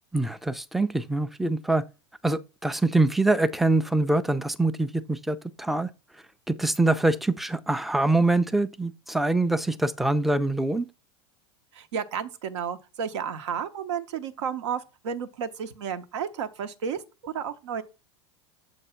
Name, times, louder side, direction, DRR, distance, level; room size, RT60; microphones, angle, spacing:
voice 1, 0.1-1.8 2.2-5.9 6.5-10.9, right 2 dB, ahead, 0.4 m, -24 dB
voice 2, 11.7-17.8, right 7 dB, 70° right, 0.8 m, -32 dB
6.9 x 2.7 x 5.6 m
hypercardioid pair, 95°, 15 cm